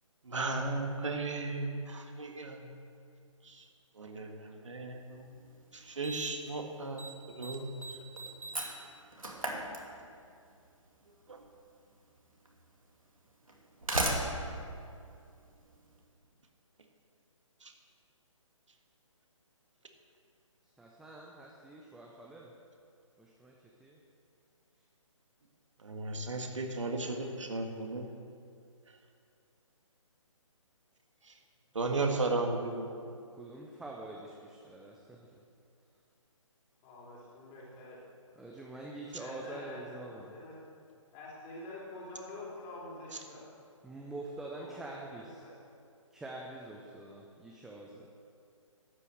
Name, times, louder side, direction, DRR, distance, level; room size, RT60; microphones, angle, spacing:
voice 1, 0.3-2.6 3.4-3.6 4.0-5.3 5.7-7.0 7.4-7.7 11.3-11.4 17.6-17.7 25.8-28.1 31.7-32.9, right 3 dB, 65° right, 3 dB, 1.9 m, -35 dB
Slam, 5.2-5.3 6.0-6.5 6.8-7.1 7.4-10.3 11.5-11.6 12.4-12.5 13.5-15.8, right 2 dB, 85° right, 2.4 m, -36 dB
voice 2, 20.8-22.5 23.2-23.5 23.8-24.0 32.0-32.2 33.4-35.4 38.4-40.3 43.8-45.4 46.1-48.1, right 2 dB, ahead, -2 dB, 0.5 m, -45 dB
voice 3, 26.8-27.3 36.8-38.0 39.2-40.6 41.1-43.5 44.6-44.8 45.2-45.5, left 2 dB, 20° left, -5 dB, 3.3 m, -47 dB
12.0 x 8.3 x 7.9 m, 2.4 s
figure-of-eight pair, 140°, 17 cm